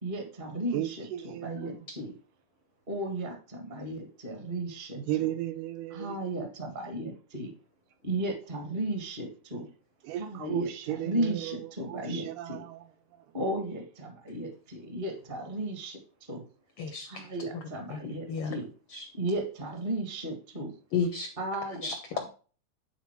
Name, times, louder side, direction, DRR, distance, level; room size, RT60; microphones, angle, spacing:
voice 1, 0.0-2.1 2.9-5.0 5.9-7.5 8.0-9.7 10.1-12.6 13.3-16.0 16.3-16.4 17.1-18.7 19.2-20.7 21.4-21.9, right 1 dB, 30° right, 1.0 m, -35 dB
voice 2, 0.7-1.8 5.0-6.2 10.0-13.3, right 13 dB, 80° right, 2.1 m, -35 dB
voice 3, 16.8-18.0 18.3-18.6 18.9-19.1 20.9-21.3 21.8-22.3, left 5 dB, 80° left, 1.3 m, -33 dB
10.5 x 4.2 x 4.6 m
omnidirectional pair, 3.8 m